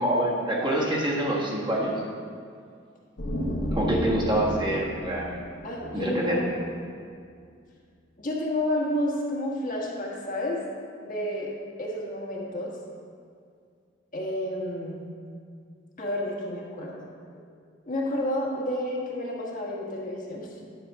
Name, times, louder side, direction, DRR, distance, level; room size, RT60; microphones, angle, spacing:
voice 1, 0.0-1.9 3.7-5.3 5.9-6.4, right 1 dB, 25° right, -4 dB, 1.4 m, -26 dB
sound 1, 3.2-6.8, left 1 dB, 85° left, 1.3 m, -32 dB
voice 2, 5.6-6.6 8.2-10.6 11.0-11.5 11.8-12.8 14.1-15.1 16.0-17.1 17.8-20.6, left 1 dB, 45° left, -3 dB, 1.4 m, -30 dB
10.5 x 4.2 x 6.2 m, 2.2 s
head